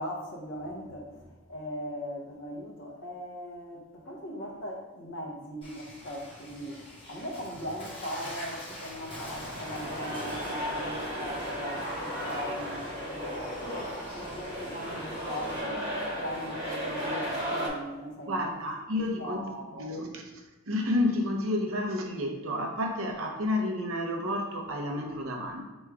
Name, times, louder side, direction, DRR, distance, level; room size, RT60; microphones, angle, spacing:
voice 1, 0.0-15.8 16.2-18.5 19.2-19.9, equal, 55° left, -1 dB, 0.9 m, -39 dB
Water / Splash splatter, 5.6-15.6, left 1 dB, 25° left, 1.2 m, -43 dB
sound 1, 8.7-17.7, equal, 50° right, 1.4 m, -35 dB
voice 2, 18.3-20.2 20.7-25.7, left 1 dB, 70° right, 2 dB, 0.7 m, -30 dB
3.5 x 3.1 x 4.6 m, 1.2 s
head